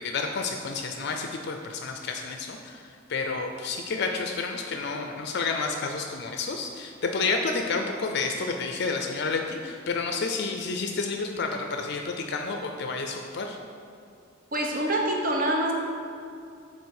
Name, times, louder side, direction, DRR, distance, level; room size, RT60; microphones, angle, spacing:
voice 1, 0.0-2.8 3.1-13.6, left 4 dB, 55° left, 4 dB, 0.4 m, -30 dB
voice 2, 14.5-15.7, right 1 dB, 45° right, -1 dB, 0.9 m, -25 dB
7.0 x 4.3 x 6.4 m, 2.4 s
head